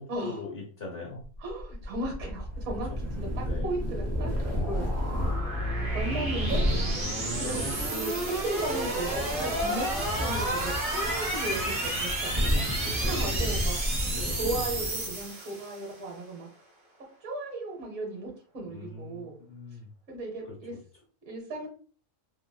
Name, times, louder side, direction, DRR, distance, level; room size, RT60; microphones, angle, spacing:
voice 1, 0.0-1.2 2.9-3.0 3.4-3.7 6.6-7.0 7.4-7.7 12.5-12.8 14.1-14.5 18.7-19.9 20.5-20.8, left 3 dB, 50° left, -1 dB, 0.9 m, -41 dB
sound 1, 1.4-16.0, right 1 dB, 45° right, 1.0 m, -32 dB
voice 2, 1.4-2.9 3.2-4.8 5.1-5.2 5.9-6.6 7.4-12.5 13.0-13.8 14.4-16.5 17.2-19.4 20.1-20.7 21.2-21.7, right 2 dB, 65° right, 0 dB, 1.2 m, -36 dB
sound 2, 2.5-15.2, left 1 dB, 20° right, 0.4 m, -33 dB
3.0 x 2.7 x 2.2 m, 0.42 s
omnidirectional pair, 1.4 m